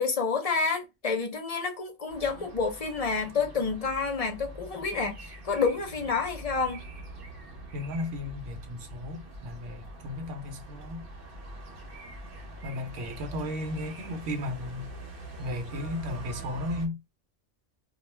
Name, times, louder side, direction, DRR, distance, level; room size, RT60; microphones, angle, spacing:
voice 1, 0.0-6.9, left 4 dB, 45° left, 0.5 m, -29 dB
sound 1, 2.1-16.9, right 1 dB, 50° right, 0.9 m, -44 dB
voice 2, 7.7-11.0 12.6-14.9 15.4-17.0, left 1 dB, 85° right, 1.0 m, -35 dB
2.3 x 2.2 x 3.0 m
omnidirectional pair, 1.2 m